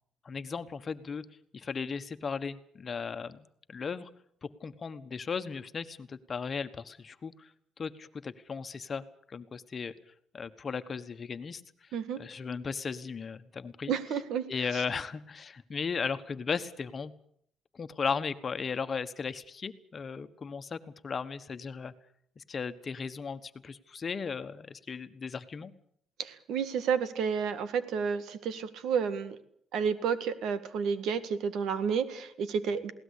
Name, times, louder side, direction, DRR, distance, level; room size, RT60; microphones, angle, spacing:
voice 1, 0.2-1.2 1.5-4.1 4.4-7.5 7.8-9.9 10.3-11.6 12.2-13.9 14.5-17.1 17.7-21.9 22.4-25.7, left 5 dB, 40° left, 12 dB, 1.4 m, -36 dB
voice 2, 13.9-14.5 26.2-29.4 29.7-32.9, right 6 dB, 80° right, 13 dB, 1.9 m, -31 dB
21.5 x 18.0 x 8.5 m, 0.67 s
cardioid pair, 90°, 0 cm